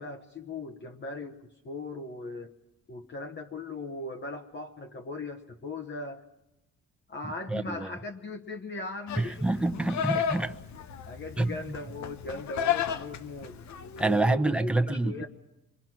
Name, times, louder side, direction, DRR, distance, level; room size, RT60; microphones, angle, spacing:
voice 1, 0.0-2.5 2.9-6.2 7.1-9.4 11.1-13.6 14.0-15.3, left 2 dB, 35° left, 1.2 m, -39 dB
voice 2, 7.5-7.9 9.2-10.5 11.4-11.7 14.0-15.3, right 2 dB, 5° right, 1.1 m, -27 dB
Livestock farm animals working animals, 9.1-14.2, left 8 dB, 65° left, 1.1 m, -33 dB
25.5 x 24.0 x 6.1 m
cardioid pair, 90°, 30 cm